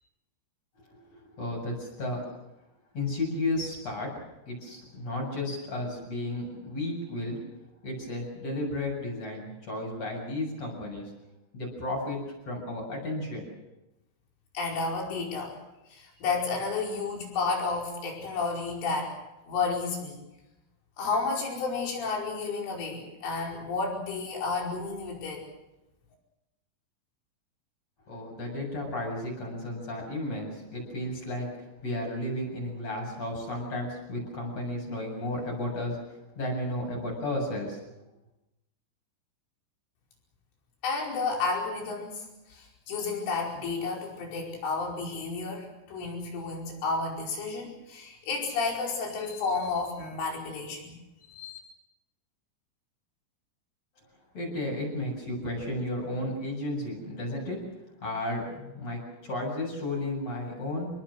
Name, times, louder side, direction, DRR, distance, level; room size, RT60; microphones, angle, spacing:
voice 1, 0.9-2.2 2.9-4.1 4.5-7.4 7.8-11.1 11.5-12.2 12.5-13.5 28.1-31.5 31.8-36.0 36.3-37.8 54.3-57.6 58.0-60.9, left 1 dB, 30° left, 0 dB, 8.4 m, -33 dB
voice 2, 14.5-15.6 15.9-19.1 19.5-20.2 21.0-25.4 40.8-51.0 51.3-51.6, left 4 dB, 75° left, 0 dB, 7.4 m, -31 dB
26.5 x 21.5 x 6.5 m, 0.98 s
omnidirectional pair, 5.7 m